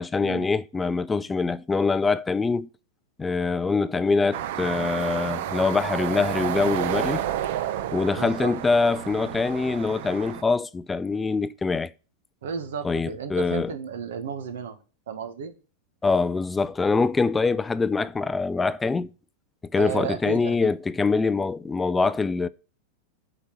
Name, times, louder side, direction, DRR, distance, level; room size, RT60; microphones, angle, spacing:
voice 1, 0.0-2.7 3.2-7.2 7.9-11.9 12.8-13.7 16.0-19.1 19.7-22.5, left 4 dB, 15° left, 0.3 m, -24 dB
sound 1, 4.3-10.4, right 11 dB, 65° right, 0.7 m, -30 dB
voice 2, 8.1-8.5 12.4-14.8 15.1-15.5 19.7-20.7, right 7 dB, 85° right, 1.3 m, -33 dB
8.0 x 4.0 x 6.6 m
hypercardioid pair, 120°, 0 cm